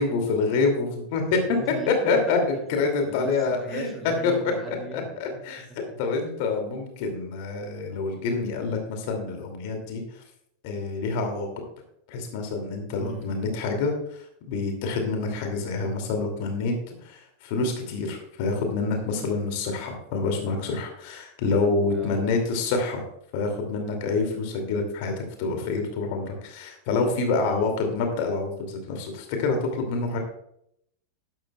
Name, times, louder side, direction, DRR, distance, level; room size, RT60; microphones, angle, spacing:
voice 1, 0.0-1.4 1.9-3.9 4.2-4.4 4.9-5.7 6.0-10.0 10.6-11.5 12.1-13.9 14.5-16.7 17.0-23.0 23.3-30.2, left 3 dB, 50° left, 4 dB, 2.5 m, -27 dB
voice 2, 1.5-2.4 2.7-5.4 5.7-5.8 13.0-13.3 19.1-19.3 21.9-22.2 27.4-27.7, right 2 dB, 10° right, 3 dB, 2.3 m, -38 dB
12.0 x 11.5 x 2.3 m, 0.74 s
figure-of-eight pair, 90°, 0 cm